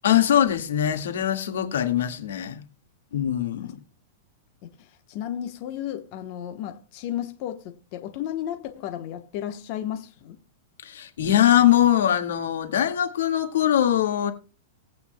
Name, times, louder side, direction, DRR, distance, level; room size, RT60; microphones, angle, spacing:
voice 1, 0.0-2.6 3.1-3.8 10.8-14.3, left 11 dB, 85° left, 1.8 m, -22 dB
voice 2, 4.6-10.4, left 11 dB, 45° left, 1.1 m, -34 dB
18.0 x 8.5 x 2.2 m
supercardioid pair, 155°, 0 cm